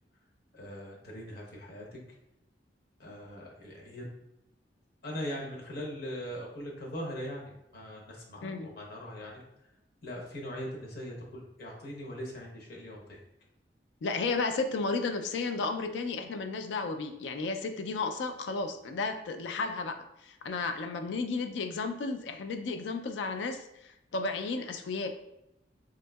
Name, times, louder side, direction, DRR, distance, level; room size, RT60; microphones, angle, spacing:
voice 1, 0.5-2.0 3.0-4.1 5.0-9.4 10.0-13.2, equal, 60° left, -1 dB, 0.8 m, -41 dB
voice 2, 14.0-25.1, left 3 dB, 80° left, 7 dB, 0.3 m, -33 dB
3.7 x 2.6 x 2.2 m, 0.86 s
head